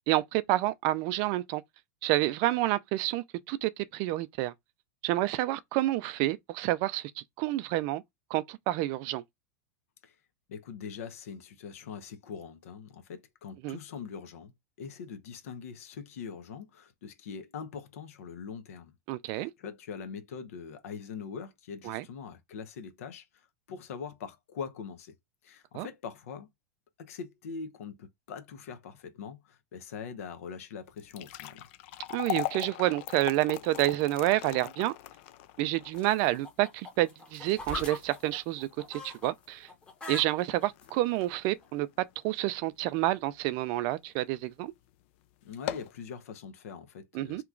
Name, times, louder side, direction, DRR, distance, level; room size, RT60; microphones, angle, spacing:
voice 1, 0.1-1.6 2.0-4.5 5.0-8.0 8.3-9.2 13.6-13.8 19.1-19.5 21.8-22.0 25.7-25.9 32.1-34.9 35.6-39.7 40.1-41.9 42.2-44.7 47.1-47.4, right 16 dB, 45° right, 0.3 m, -29 dB
voice 2, 10.5-18.9 19.3-25.1 25.4-26.5 27.0-31.7 45.4-47.4, left 6 dB, 85° left, 0.8 m, -42 dB
sound 1, 30.9-43.2 43.6-43.7 44.4-44.6 44.9-45.0 45.5-46.0, left 14 dB, 60° left, 0.3 m, -40 dB
sound 2, 35.9-39.3 39.6-40.9 41.6-41.7, left 3 dB, 15° left, 0.8 m, -42 dB
2.9 x 2.4 x 3.6 m
supercardioid pair, 150°, 7 cm